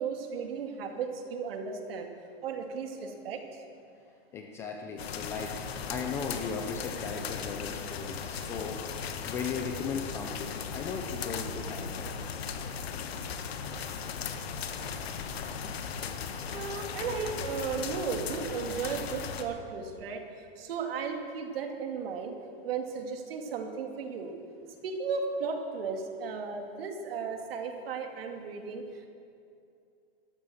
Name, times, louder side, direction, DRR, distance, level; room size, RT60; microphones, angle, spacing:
voice 1, 0.0-2.1 2.4-3.6 16.5-20.2 20.6-22.3 22.6-24.3 24.8-29.1, right 5 dB, 65° right, 4 dB, 2.4 m, -35 dB
voice 2, 4.3-5.6 5.9-8.8 9.2-12.1, left 5 dB, 10° left, 3 dB, 0.3 m, -37 dB
sound 1, 5.0-19.4, left 6 dB, 75° left, 1.6 m, -37 dB
13.5 x 12.5 x 7.0 m, 2.5 s
hypercardioid pair, 155°, 31 cm